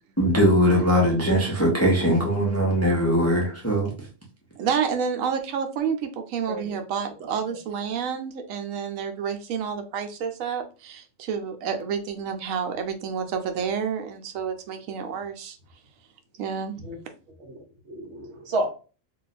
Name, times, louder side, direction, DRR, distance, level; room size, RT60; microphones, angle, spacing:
voice 1, 0.2-3.9, equal, 15° left, -2 dB, 0.6 m, -21 dB
voice 2, 4.6-15.6 16.4-16.9, right 7 dB, 80° right, 6 dB, 1.0 m, -29 dB
voice 3, 6.5-6.8 7.5-7.6 16.8-17.0 17.4-18.7, right 1 dB, 60° right, 4 dB, 1.0 m, -31 dB
2.6 x 2.3 x 4.0 m, 0.35 s
omnidirectional pair, 1.4 m